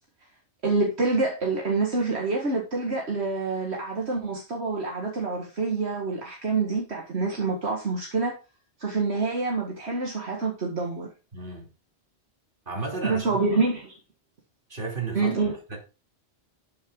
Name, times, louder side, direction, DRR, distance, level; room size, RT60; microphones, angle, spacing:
voice 1, 0.6-8.3 8.8-11.1 13.0-14.0 15.1-15.5, right 3 dB, 70° right, 2.1 m, -27 dB
voice 2, 11.3-11.7 12.7-13.4 14.7-15.3 15.7-15.8, right 3 dB, 50° right, 3.2 m, -33 dB
12.0 x 7.1 x 3.8 m
omnidirectional pair, 1.1 m